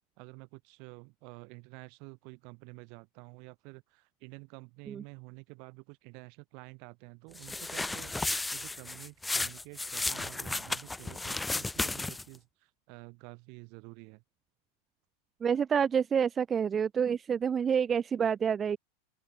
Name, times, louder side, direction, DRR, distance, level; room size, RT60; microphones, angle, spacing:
voice 1, 0.2-14.2, right 34 dB, 55° right, 4.4 m, -50 dB
sound 1, 7.4-12.4, left 2 dB, 10° left, 1.5 m, -34 dB
voice 2, 15.4-18.8, right 7 dB, 25° right, 0.3 m, -28 dB
open air
hypercardioid pair, 105°, 0 cm